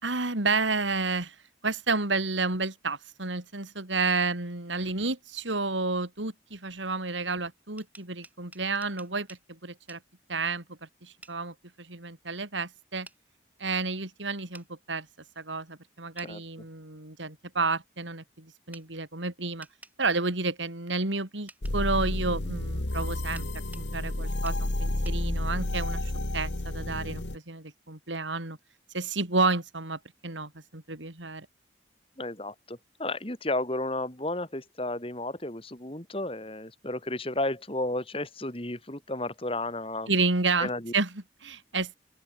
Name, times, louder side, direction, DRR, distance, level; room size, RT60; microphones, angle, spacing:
voice 1, 0.0-1.4 1.6-10.0 10.3-13.1 13.6-15.1 15.4-19.7 20.0-23.5 23.8-28.6 28.9-31.5 40.1-42.0, right 3 dB, 90° right, 3.9 m, -31 dB
sound 1, 7.6-9.4 9.9-10.0 11.2-11.4 13.0-13.2 14.5-14.7 16.2-16.3 18.7-18.9 19.6-20.0 21.5-21.8 23.4-23.9 24.4-24.6 25.0-25.2, right 2 dB, 10° right, 6.0 m, -50 dB
sound 2, 21.6-27.4, left 1 dB, 80° left, 1.9 m, -30 dB
voice 2, 32.2-40.1 40.6-40.9, left 2 dB, 30° left, 3.7 m, -33 dB
open air
head